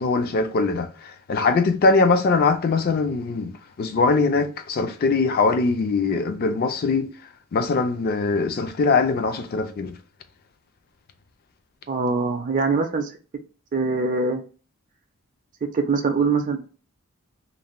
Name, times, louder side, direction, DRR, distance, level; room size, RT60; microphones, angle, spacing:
voice 1, 0.0-7.1 7.5-10.0, left 4 dB, 45° left, 0.3 m, -22 dB
voice 2, 11.9-13.1 13.7-14.4 15.6-16.7, right 4 dB, 35° right, 0.4 m, -23 dB
2.5 x 2.1 x 2.9 m
head